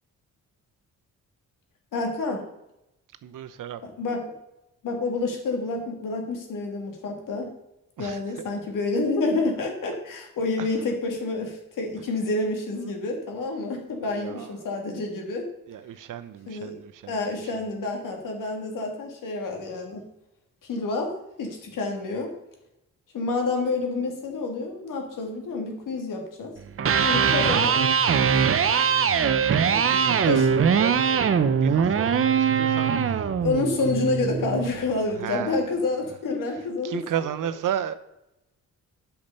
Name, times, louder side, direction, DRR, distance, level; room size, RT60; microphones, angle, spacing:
voice 1, 1.9-2.4 3.8-4.3 4.8-7.5 8.0-15.5 16.5-16.7 17.1-20.0 20.6-21.1 21.4-22.3 23.1-26.5 27.0-27.8 30.2-30.5 33.4-37.0, left 3 dB, 75° left, 2.5 m, -28 dB
voice 2, 3.2-3.8 8.0-8.4 10.6-10.7 14.1-14.7 15.7-17.2 17.5-17.7 29.3-33.3 35.2-35.7 36.8-37.9, right 10 dB, 75° right, 0.9 m, -34 dB
Electric guitar, 26.7-34.8, right 7 dB, 40° right, 0.8 m, -22 dB
8.7 x 5.9 x 6.8 m
cardioid pair, 100°, 32 cm